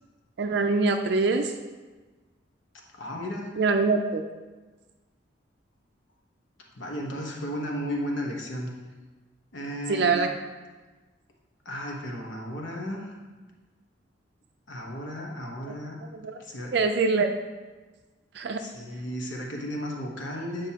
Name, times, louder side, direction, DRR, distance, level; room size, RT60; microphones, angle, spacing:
voice 1, 0.4-1.5 3.6-4.2 9.9-10.3 16.1-16.4 16.7-17.3 18.3-18.6, right 4 dB, 55° right, 5 dB, 0.4 m, -24 dB
voice 2, 2.9-3.6 6.7-8.7 9.5-10.2 11.6-13.1 14.7-16.0 16.4-16.7 18.6-20.7, equal, 75° left, 0 dB, 1.1 m, -34 dB
9.0 x 5.3 x 2.9 m, 1.3 s
head